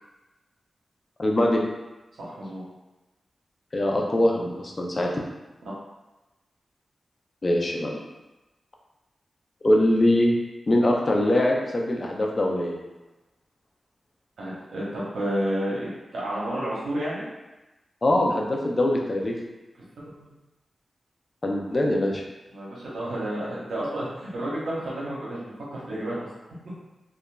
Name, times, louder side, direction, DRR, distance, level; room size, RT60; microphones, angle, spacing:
voice 1, 1.2-1.6 3.7-5.2 7.4-8.0 9.6-10.4 10.7-12.8 18.0-19.4 21.4-22.2, left 1 dB, 45° left, 0 dB, 0.5 m, -22 dB
voice 2, 2.2-2.6 14.4-17.3 19.9-20.3 22.5-26.2, right 1 dB, 80° right, -7 dB, 1.0 m, -31 dB
2.9 x 2.3 x 2.3 m, 1.1 s
cardioid pair, 40°, 0 cm